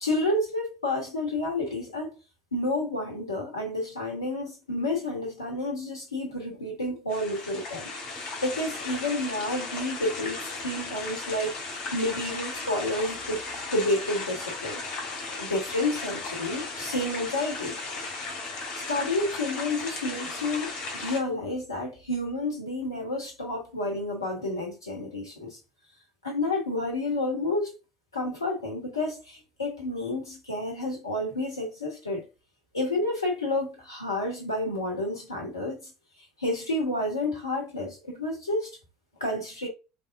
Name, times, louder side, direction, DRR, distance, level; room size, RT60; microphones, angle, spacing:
voice 1, 0.0-2.2 2.5-13.4 13.7-14.8 15.4-17.8 18.7-25.6 26.2-27.7 28.1-32.2 32.7-35.9 36.4-38.7 39.2-39.7, left 2 dB, 80° left, 1.2 m, -30 dB
sound 1, 7.1-21.2, left 3 dB, 55° left, 1.6 m, -36 dB
3.5 x 3.5 x 2.6 m
figure-of-eight pair, 70°, 2 cm